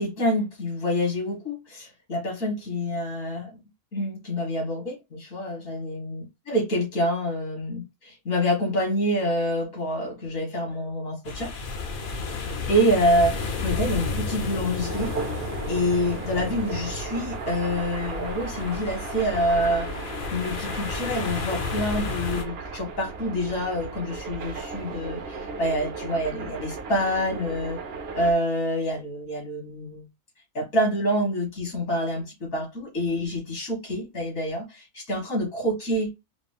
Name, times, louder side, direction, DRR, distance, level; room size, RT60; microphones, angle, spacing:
voice 1, 0.0-3.6 3.9-11.5 12.7-15.1 15.7-20.0 20.3-27.8 28.1-30.0 30.5-36.1, equal, 65° left, 2.1 m, -27 dB
sound 1, 11.3-22.4, left 4 dB, 50° left, 0.7 m, -32 dB
sound 2, 14.8-28.3, right 4 dB, 55° right, 0.8 m, -36 dB
4.9 x 2.0 x 3.4 m
omnidirectional pair, 1.5 m